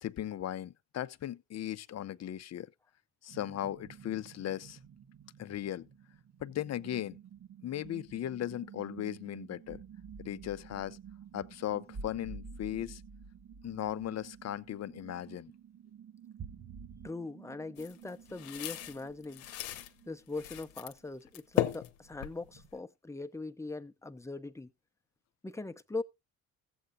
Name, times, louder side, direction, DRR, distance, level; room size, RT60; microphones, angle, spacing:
voice 1, 0.0-2.7 3.2-4.8 5.4-5.9 6.4-7.2 7.6-9.8 10.2-11.0 11.3-13.0 13.6-15.5, left 12 dB, 40° left, 0.6 m, -37 dB
sound 1, 3.3-21.1 21.5-21.6 22.0-22.7, right 10 dB, 45° right, 1.8 m, -53 dB
sound 2, 7.4-7.5 7.7-8.3 8.5-8.6 9.7-14.7 16.4-17.1, right 3 dB, 25° right, 1.0 m, -49 dB
voice 2, 17.0-19.5 20.1-24.7 25.4-26.0, left 3 dB, 5° left, 0.8 m, -41 dB
sound 3, 17.8-19.9 20.3-21.0 21.3-22.8, left 13 dB, 85° left, 0.9 m, -36 dB
16.0 x 7.9 x 2.7 m
hypercardioid pair, 55°, 41 cm